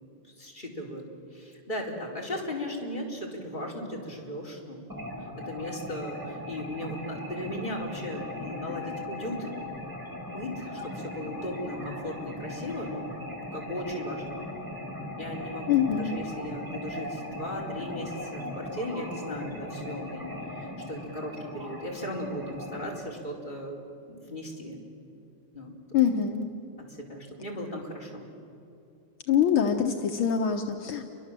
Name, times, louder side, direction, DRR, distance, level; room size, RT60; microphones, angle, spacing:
voice 1, 0.4-4.8 5.2-9.5 10.3-13.1 13.5-14.4 15.2-23.8 24.1-24.8 25.5-25.7 26.9-28.2, left 1 dB, 20° left, -2 dB, 4.9 m, -37 dB
sound 1, 4.9-23.0, left 1 dB, 10° right, 5.4 m, -39 dB
voice 2, 15.7-16.1 25.9-26.5 29.3-31.0, left 8 dB, 75° left, 4 dB, 2.0 m, -24 dB
30.0 x 25.0 x 7.6 m, 2.7 s
omnidirectional pair, 2.4 m